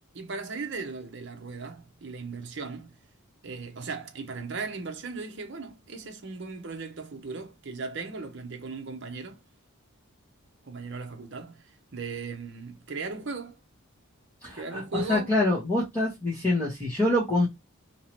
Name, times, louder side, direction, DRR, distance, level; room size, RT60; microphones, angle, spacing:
voice 1, 0.1-3.0 3.4-9.4 10.6-13.6 14.5-15.3, right 4 dB, 55° right, 0.7 m, -37 dB
voice 2, 14.4-14.8 15.1-17.5, left 1 dB, 10° left, 1.2 m, -25 dB
2.9 x 2.7 x 3.0 m
head